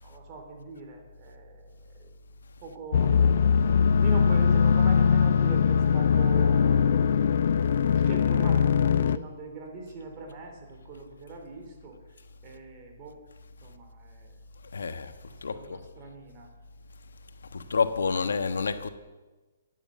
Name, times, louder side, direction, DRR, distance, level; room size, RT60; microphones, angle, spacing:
voice 1, 0.0-2.1 2.6-7.5 7.8-12.0 12.4-13.2 13.6-14.4 15.3-16.5, right 3 dB, 30° right, 3.7 m, -42 dB
sound 1, 2.9-9.2, left 6 dB, 60° left, 0.6 m, -21 dB
voice 2, 14.7-15.1 15.4-15.8 17.5-18.9, left 5 dB, 85° left, 1.3 m, -28 dB
14.5 x 10.0 x 8.1 m
hypercardioid pair, 150°, 0 cm